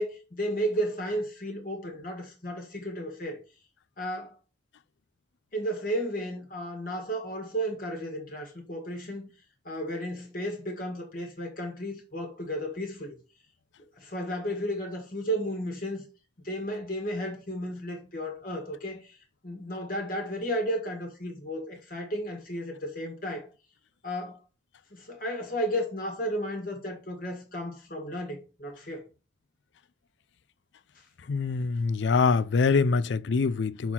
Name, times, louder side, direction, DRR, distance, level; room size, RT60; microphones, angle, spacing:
voice 1, 0.0-3.4 4.0-4.4 5.5-9.3 9.6-13.2 14.0-16.0 16.4-19.2 19.4-23.5 24.0-24.4 24.9-29.1, equal, 50° left, 1.7 m, -33 dB
voice 2, 31.3-33.9, left 4 dB, 75° left, 0.4 m, -24 dB
5.7 x 4.2 x 5.8 m
head